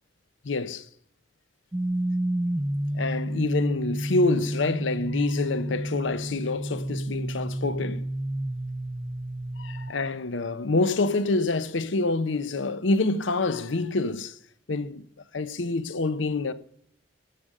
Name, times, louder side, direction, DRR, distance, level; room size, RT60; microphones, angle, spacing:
voice 1, 0.4-0.9 2.9-8.1 9.6-14.4 14.7-15.1 15.3-16.5, left 3 dB, 85° left, 0.7 m, -27 dB
sound 1, 1.7-9.9, right 1 dB, 10° right, 0.3 m, -30 dB
14.5 x 5.1 x 6.6 m
head